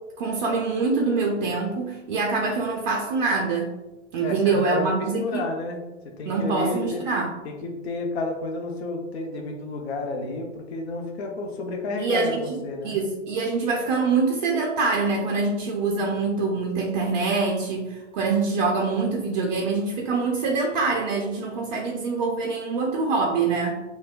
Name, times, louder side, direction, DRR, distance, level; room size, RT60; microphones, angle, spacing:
voice 1, 0.2-3.7 4.1-5.4 6.3-7.3 12.0-23.8, right 4 dB, 40° right, -1 dB, 0.4 m, -25 dB
voice 2, 4.2-5.8 6.0-7.0 7.4-13.0, left 2 dB, 60° left, 2 dB, 0.7 m, -31 dB
3.3 x 2.2 x 2.3 m, 1.1 s
figure-of-eight pair, 110°, 37 cm